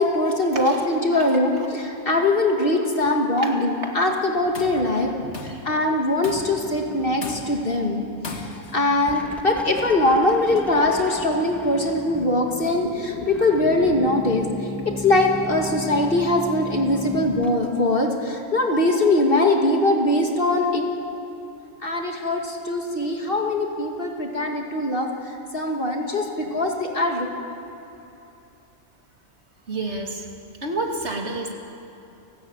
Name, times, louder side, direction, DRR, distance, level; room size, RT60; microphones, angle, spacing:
voice 1, 0.0-5.1 5.4-8.0 8.3-20.9 21.8-25.1 25.5-27.3, left 2 dB, 45° left, 1 dB, 2.4 m, -22 dB
voice 2, 3.4-4.0 4.8-5.6 29.7-30.3 30.6-31.5, right 2 dB, 55° right, 2 dB, 2.6 m, -31 dB
Tools, 4.3-4.9 5.3-5.7 6.2-6.7 7.2-7.7 8.2-8.8, left 3 dB, 60° left, 2.0 m, -37 dB
sound 1, 6.3-17.5, left 1 dB, ahead, 1.3 m, -36 dB
30.0 x 13.0 x 8.9 m, 2.9 s
omnidirectional pair, 1.3 m